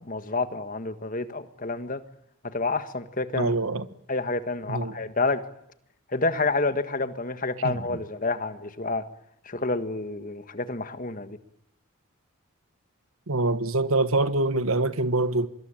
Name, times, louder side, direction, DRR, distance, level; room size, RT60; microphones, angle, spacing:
voice 1, 0.0-2.0 2.5-3.5 4.1-5.4 6.1-9.0 9.5-11.4, left 3 dB, 35° left, 1.7 m, -29 dB
voice 2, 3.3-3.9 4.7-5.0 7.6-7.8 13.3-15.5, right 2 dB, 70° right, 1.5 m, -24 dB
25.5 x 23.0 x 9.1 m
head